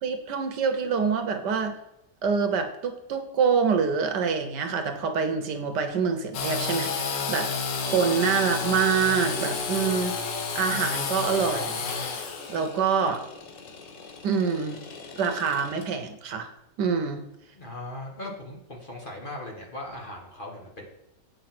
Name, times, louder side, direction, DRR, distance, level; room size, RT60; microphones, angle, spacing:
voice 1, 0.0-1.7 2.2-7.5 7.8-10.1 10.5-11.9 12.5-13.2 14.2-14.8 15.2-16.5 16.8-17.2, right 6 dB, 70° right, 7 dB, 1.5 m, -26 dB
Engine / Sawing, 6.3-15.8, left 5 dB, 85° left, 1.7 m, -32 dB
voice 2, 17.6-20.9, left 1 dB, 30° left, -1 dB, 1.5 m, -39 dB
8.1 x 5.6 x 6.0 m, 0.84 s
omnidirectional pair, 1.9 m